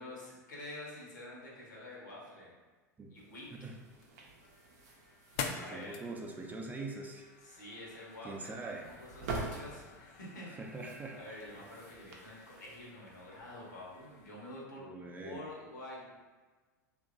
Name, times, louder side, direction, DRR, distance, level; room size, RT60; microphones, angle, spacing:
voice 1, 0.0-2.5 3.1-3.5 5.5-6.0 7.4-10.5 11.1-16.1, left 1 dB, 85° left, -4 dB, 0.9 m, -48 dB
sound 1, 3.1-14.3, right 3 dB, 65° right, 0.6 m, -48 dB
sound 2, 3.7-14.7, left 6 dB, 55° left, 0.4 m, -48 dB
voice 2, 5.5-7.3 8.2-8.9 10.5-11.4 14.8-15.4, right 3 dB, 15° right, 1 dB, 0.4 m, -43 dB
2.9 x 2.5 x 2.5 m, 1.3 s
hypercardioid pair, 90°, 10 cm